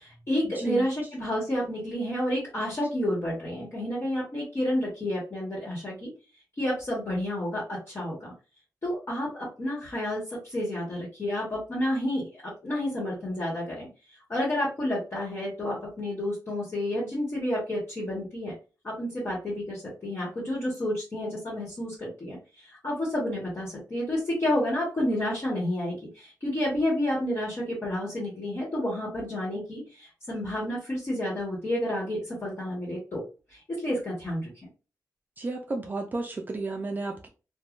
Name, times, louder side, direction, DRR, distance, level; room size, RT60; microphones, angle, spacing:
voice 1, 0.0-6.1 6.6-8.3 8.8-13.9 14.3-18.5 18.8-33.2 33.5-34.5, left 1 dB, 40° left, 1.1 m, -30 dB
voice 2, 35.4-37.3, right 3 dB, 30° right, 0.4 m, -32 dB
3.2 x 2.1 x 2.4 m
wide cardioid pair, 155°, 7 cm